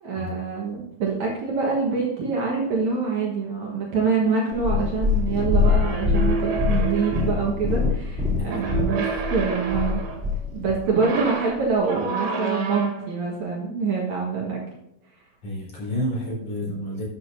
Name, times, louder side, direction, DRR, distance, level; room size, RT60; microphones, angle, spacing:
voice 1, 0.0-10.0 10.5-14.6, right 4 dB, 60° right, -3 dB, 2.3 m, -25 dB
Purr, 4.5-10.8 11.6-11.7, left 4 dB, ahead, 2.1 m, -24 dB
sound 1, 5.6-7.5 8.5-10.3 10.9-13.1, right 5 dB, 85° right, 3.7 m, -30 dB
voice 2, 15.4-17.0, equal, 40° left, -4 dB, 5.0 m, -30 dB
12.0 x 8.5 x 2.7 m, 0.86 s
omnidirectional pair, 4.4 m